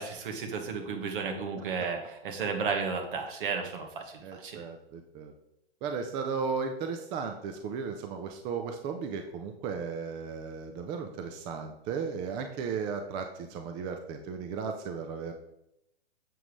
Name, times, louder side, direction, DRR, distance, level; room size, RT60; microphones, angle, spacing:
voice 1, 0.0-4.0 4.3-4.6, right 5 dB, 60° right, 4 dB, 1.7 m, -33 dB
voice 2, 4.2-5.3 5.8-15.3, right 5 dB, 15° right, 5 dB, 0.4 m, -35 dB
7.5 x 7.1 x 3.2 m, 0.82 s
hypercardioid pair, 130°, 31 cm